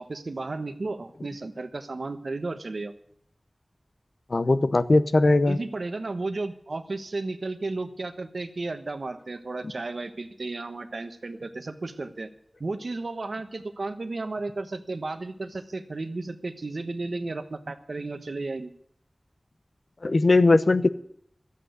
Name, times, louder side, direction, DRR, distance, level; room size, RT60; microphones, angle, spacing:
voice 1, 0.0-2.9 5.5-12.3 12.6-18.7, right 3 dB, 80° right, 9 dB, 1.2 m, -33 dB
voice 2, 4.3-5.6 20.0-20.9, left 2 dB, 65° left, 12 dB, 0.8 m, -19 dB
12.5 x 8.4 x 9.3 m, 0.68 s
wide cardioid pair, 65°, 0 cm